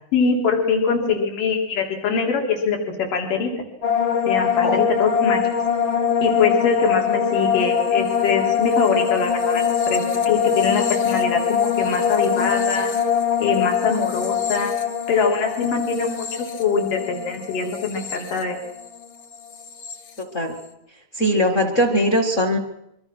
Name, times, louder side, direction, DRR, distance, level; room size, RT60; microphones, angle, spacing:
voice 1, 0.1-2.8 3.1-3.5 4.3-5.4 6.2-12.9 13.4-14.7 15.1-18.6, left 5 dB, 65° left, 2 dB, 5.4 m, -23 dB
sound 1, 3.8-19.0 19.3-20.0, left 7 dB, 45° left, 1.8 m, -23 dB
voice 2, 20.2-20.6 21.1-22.6, equal, 25° left, 4 dB, 1.8 m, -20 dB
25.0 x 24.0 x 6.2 m, 0.81 s
omnidirectional pair, 4.0 m